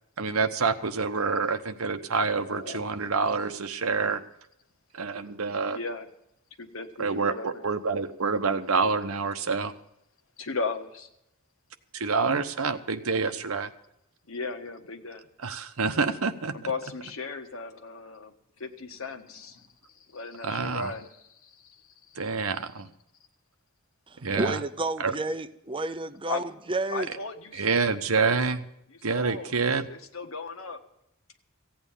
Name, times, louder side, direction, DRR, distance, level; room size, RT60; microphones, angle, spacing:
voice 1, 0.2-4.2 4.9-5.8 7.0-9.7 11.9-13.7 15.4-16.5 20.4-20.9 22.2-22.9 24.2-24.6 25.0-25.1 27.5-28.6 29.0-29.9, right 4 dB, 85° right, 1.0 m, -27 dB
voice 2, 2.5-2.8 5.7-6.1 6.6-7.6 10.4-11.1 14.3-15.3 16.5-18.3 18.6-19.7 20.1-21.1 21.4-21.5 26.3-26.4 26.9-28.6 28.9-29.5 29.9-30.8, left 4 dB, 70° left, 1.5 m, -36 dB
voice 3, 24.1-27.1, right 2 dB, 25° right, 0.6 m, -31 dB
15.5 x 8.8 x 7.3 m
head